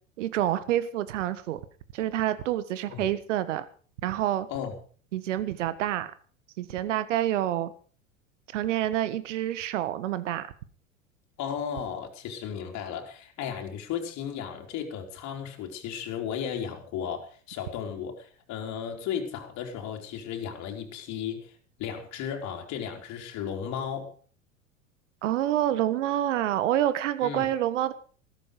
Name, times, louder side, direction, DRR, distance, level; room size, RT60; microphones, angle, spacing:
voice 1, 0.2-1.6 1.9-3.7 4.0-4.5 5.1-6.1 6.6-7.7 8.5-10.5 25.2-27.9, right 12 dB, 65° right, 1.5 m, -27 dB
voice 2, 11.4-24.1 27.2-27.5, left 8 dB, 45° left, 3.9 m, -35 dB
15.5 x 14.0 x 5.1 m
figure-of-eight pair, 85°, 39 cm